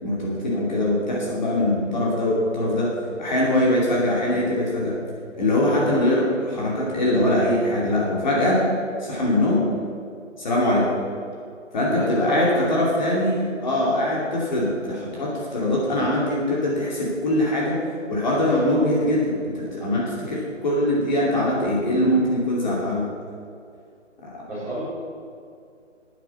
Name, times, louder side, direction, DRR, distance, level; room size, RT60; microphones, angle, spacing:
voice 1, 0.0-2.9 3.2-5.0 5.4-8.6 9.0-9.7 10.4-10.9 11.7-17.8 18.1-23.0 24.2-24.4, left 1 dB, 35° left, -5 dB, 2.7 m, -22 dB
voice 2, 11.9-12.6 24.5-24.8, right 1 dB, 5° right, -14 dB, 3.6 m, -28 dB
10.0 x 9.5 x 7.3 m, 2.4 s
figure-of-eight pair, 165°, 38 cm